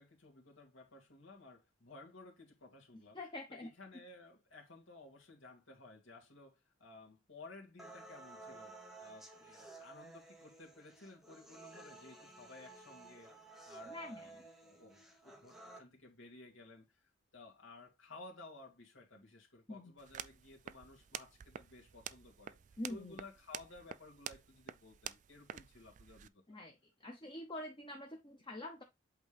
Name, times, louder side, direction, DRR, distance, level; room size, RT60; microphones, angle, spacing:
voice 1, 0.0-3.2 3.5-13.3 13.6-22.6 22.9-26.4, left 2 dB, 80° left, 2.3 m, -56 dB
voice 2, 3.1-3.7 13.9-14.3 19.7-19.9 22.8-23.2 26.5-28.8, left 1 dB, 25° left, 0.8 m, -46 dB
sound 1, 7.8-15.8, right 3 dB, ahead, 1.0 m, -54 dB
sound 2, 20.0-26.3, right 9 dB, 40° right, 0.3 m, -49 dB
8.0 x 3.6 x 3.4 m
head